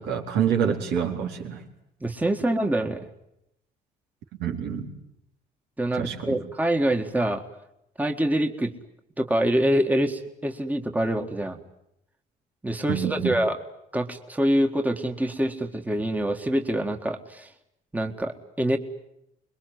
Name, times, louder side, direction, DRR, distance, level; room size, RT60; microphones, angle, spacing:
voice 1, 0.0-1.6 4.4-4.9 5.9-6.4 12.9-13.3, right 8 dB, 80° right, 3 dB, 4.2 m, -27 dB
voice 2, 2.0-3.1 5.8-7.4 8.0-8.8 9.2-11.6 12.6-13.6 13.9-17.5 17.9-18.8, right 1 dB, 10° right, 5 dB, 1.9 m, -25 dB
26.0 x 22.0 x 9.6 m, 0.80 s
cardioid pair, 110°, 17 cm